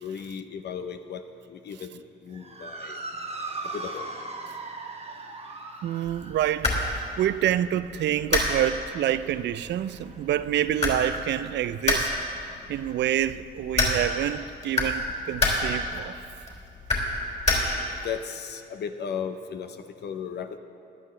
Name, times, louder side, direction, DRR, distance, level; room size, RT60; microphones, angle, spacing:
voice 1, 0.0-3.0 3.7-4.1 18.0-20.6, left 7 dB, 60° left, 0.7 m, -36 dB
Motor vehicle (road) / Siren, 2.3-10.9, right 3 dB, 30° right, 1.2 m, -40 dB
voice 2, 5.8-12.1 12.7-16.2, right 11 dB, 65° right, 0.4 m, -27 dB
sound 1, 6.1-18.1, left 2 dB, 35° left, 3.4 m, -30 dB
17.5 x 11.5 x 3.2 m
cardioid pair, 90°, 20 cm